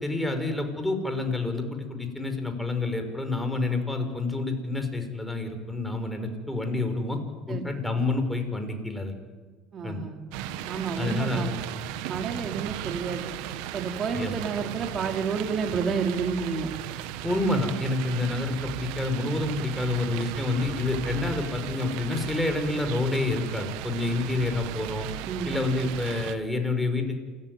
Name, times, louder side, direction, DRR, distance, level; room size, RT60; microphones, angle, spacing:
voice 1, 0.0-7.2 7.5-9.2 9.8-10.0 11.0-11.5 12.3-12.4 14.2-14.3 17.2-25.1 25.5-27.2, left 2 dB, 5° left, 6 dB, 5.6 m, -28 dB
voice 2, 9.7-10.2 10.6-11.5 12.1-13.3 13.7-16.7 25.3-25.5, right 5 dB, 40° right, 4 dB, 4.1 m, -30 dB
sound 1, 10.3-26.4, right 11 dB, 70° right, 1.7 m, -36 dB
28.0 x 14.5 x 9.7 m, 1.4 s
hypercardioid pair, 75°, 0 cm